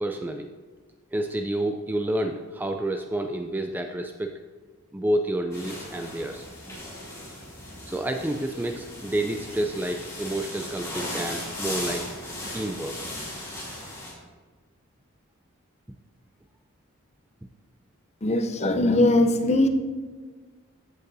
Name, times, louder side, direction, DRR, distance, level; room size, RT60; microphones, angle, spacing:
voice 1, 0.0-0.5 1.1-4.4 4.9-6.4 7.9-12.1 12.5-13.0, right 1 dB, 10° right, 5 dB, 0.3 m, -29 dB
sound 1, 5.5-14.1, left 1 dB, 15° left, 2.6 m, -37 dB
voice 2, 18.2-19.7, left 1 dB, 30° left, 6 dB, 0.6 m, -20 dB
14.0 x 8.2 x 2.7 m, 1.4 s
head